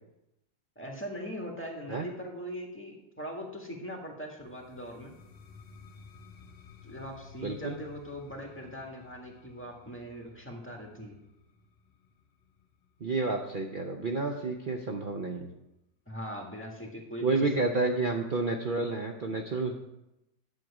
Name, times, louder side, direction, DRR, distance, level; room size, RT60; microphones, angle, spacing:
voice 1, 0.7-5.1 6.8-11.2 16.1-17.8, equal, 5° left, 0 dB, 1.6 m, -41 dB
sound 1, 4.4-14.2, left 6 dB, 45° left, 0.8 m, -54 dB
voice 2, 7.4-7.8 13.0-15.5 17.2-19.8, right 3 dB, 60° right, 2 dB, 0.5 m, -30 dB
10.5 x 7.7 x 4.9 m, 0.91 s
omnidirectional pair, 1.9 m